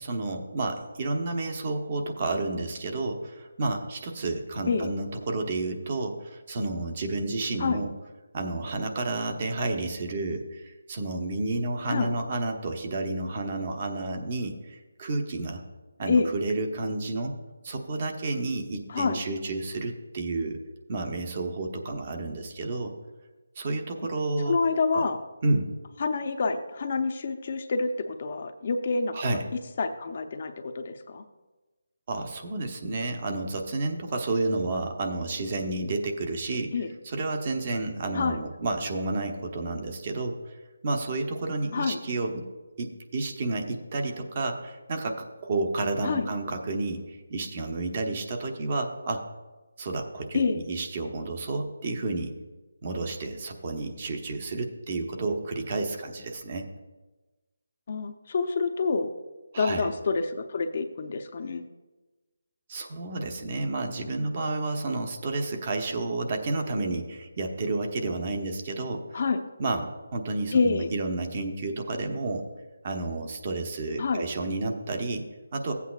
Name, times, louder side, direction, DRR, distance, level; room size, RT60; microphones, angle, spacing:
voice 1, 0.0-7.9 8.3-15.6 16.0-17.3 17.6-20.6 20.9-22.9 23.6-24.6 24.9-25.0 25.4-25.7 29.1-29.5 32.1-36.8 37.0-40.6 40.8-42.5 42.8-49.2 49.8-52.3 52.8-56.7 59.5-59.9 62.7-69.2 69.6-72.5 72.8-75.7, right 2 dB, 35° right, 4 dB, 1.0 m, -31 dB
voice 2, 24.5-25.2 26.0-29.4 29.8-31.2 36.7-36.9 38.1-38.4 41.7-42.0 46.0-46.3 50.3-50.6 57.9-59.1 59.6-61.7 69.1-69.4 70.5-70.9 74.0-74.2, left 4 dB, 40° left, 7 dB, 0.6 m, -27 dB
15.0 x 8.3 x 2.4 m, 1.2 s
figure-of-eight pair, 170°, 0 cm